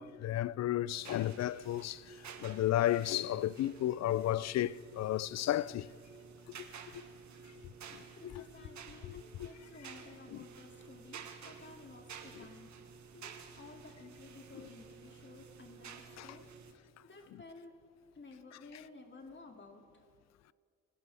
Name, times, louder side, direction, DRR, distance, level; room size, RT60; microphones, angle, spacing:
voice 1, 0.0-2.0 2.4-5.9 6.6-6.7 7.9-8.4 9.0-9.5 10.3-10.4 12.4-12.5 16.2-16.3, left 13 dB, 55° left, 0.5 m, -33 dB
sound 1, 0.9-16.7, right 6 dB, 60° right, 1.5 m, -52 dB
voice 2, 8.2-12.7 13.1-15.9 16.2-16.5 17.0-17.7 18.1-19.8, left 3 dB, 35° left, 2.7 m, -54 dB
28.5 x 12.0 x 3.5 m
supercardioid pair, 55°, 33 cm